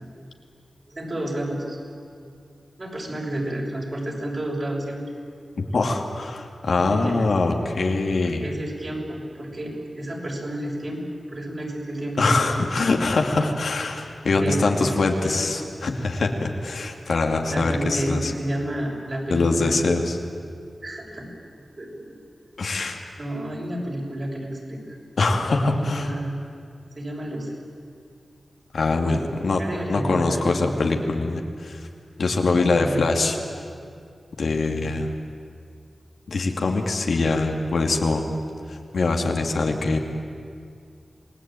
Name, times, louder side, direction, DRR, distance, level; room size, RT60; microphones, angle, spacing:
voice 1, 0.9-1.8 2.8-5.0 6.8-7.3 8.2-13.0 14.4-15.4 17.5-19.8 20.8-21.3 21.8-22.1 23.2-24.9 25.7-26.4 26.9-27.5 28.9-30.8 32.5-33.0, right 1 dB, 40° right, -1 dB, 6.7 m, -31 dB
voice 2, 5.6-8.5 12.2-18.3 19.3-20.2 22.6-23.0 25.2-26.2 28.7-29.6 29.9-31.9 32.2-33.4 34.4-35.1 36.3-38.2 38.7-40.0, left 3 dB, 80° left, 2 dB, 2.6 m, -23 dB
28.0 x 19.5 x 9.1 m, 2.3 s
wide cardioid pair, 75°, 0 cm